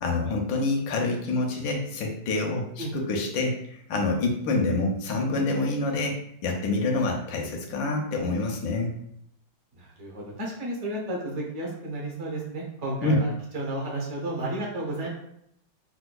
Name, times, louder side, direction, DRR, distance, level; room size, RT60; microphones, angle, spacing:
voice 1, 0.0-6.2 6.4-8.9 13.0-13.2, left 2 dB, 75° left, 1 dB, 1.3 m, -27 dB
voice 2, 9.7-15.1, right 1 dB, 55° right, -2 dB, 0.8 m, -32 dB
4.3 x 2.2 x 2.2 m, 0.72 s
omnidirectional pair, 2.2 m